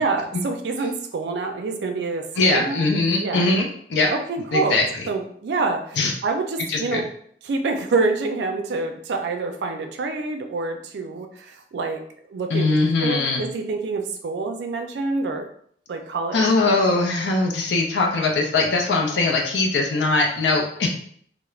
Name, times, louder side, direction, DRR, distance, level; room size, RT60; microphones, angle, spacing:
voice 1, 0.0-2.8 3.2-3.5 4.1-7.1 7.4-12.0 12.3-15.5 15.9-16.5, right 3 dB, 80° right, 5 dB, 0.4 m, -27 dB
voice 2, 2.4-4.1 4.5-5.1 6.0-6.1 6.7-7.0 12.5-13.4 16.3-20.9, left 3 dB, 80° left, 1 dB, 0.4 m, -21 dB
2.3 x 2.0 x 3.0 m, 0.62 s
head